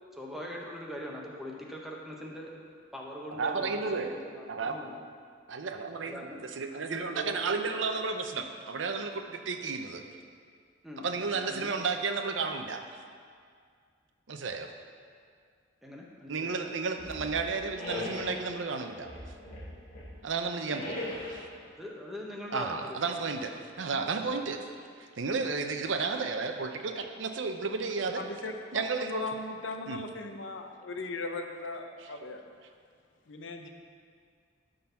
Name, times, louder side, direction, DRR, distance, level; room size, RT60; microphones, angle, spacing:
voice 1, 0.1-2.5 2.9-5.0 6.0-6.4 6.7-7.8 10.8-11.7 15.8-16.6 20.7-20.9 21.8-23.0 24.2-24.4, left 1 dB, ahead, -2 dB, 1.0 m, -42 dB
voice 2, 3.3-4.1 4.5-4.8 5.5-10.0 11.0-12.8 14.3-14.7 16.3-19.1 20.2-21.4 22.5-24.6 25.2-28.2 28.7-29.2 29.9-30.0 32.0-32.1, right 4 dB, 80° right, 6 dB, 0.7 m, -32 dB
sound 1, 17.0-18.4 19.0-20.2 20.7-21.5, left 2 dB, 45° left, 2.5 m, -39 dB
voice 3, 28.2-32.4 33.3-33.7, left 3 dB, 80° left, 5 dB, 0.8 m, -38 dB
11.5 x 4.0 x 5.7 m, 2.1 s
head